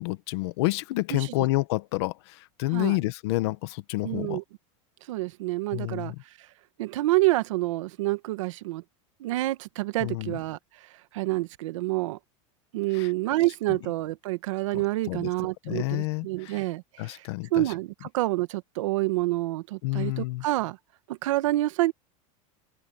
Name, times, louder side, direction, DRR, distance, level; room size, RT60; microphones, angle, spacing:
voice 1, 0.0-4.4 5.7-6.1 10.0-10.4 12.9-13.1 14.7-14.8 15.1-15.3 15.6-16.6 17.0-17.7 19.8-20.4, left 20 dB, 55° left, 1.2 m, -29 dB
voice 2, 4.0-4.4 5.1-6.1 6.8-8.8 9.2-10.6 11.1-12.2 12.7-17.2 17.5-20.8 21.1-21.9, right 18 dB, 70° right, 1.3 m, -28 dB
open air
supercardioid pair, 180°, 17 cm